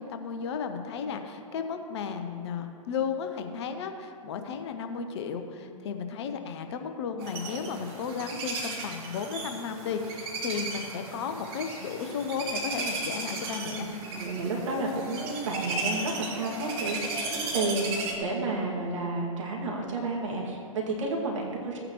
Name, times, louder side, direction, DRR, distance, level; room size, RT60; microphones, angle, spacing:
voice 1, 0.0-13.9, left 6 dB, 50° left, 6 dB, 0.9 m, -34 dB
sound 1, 7.2-18.1, right 3 dB, 45° right, 1.8 m, -35 dB
voice 2, 13.4-21.8, right 2 dB, 60° right, -1 dB, 2.1 m, -31 dB
15.0 x 8.9 x 3.1 m, 2.4 s
figure-of-eight pair, 110°, 18 cm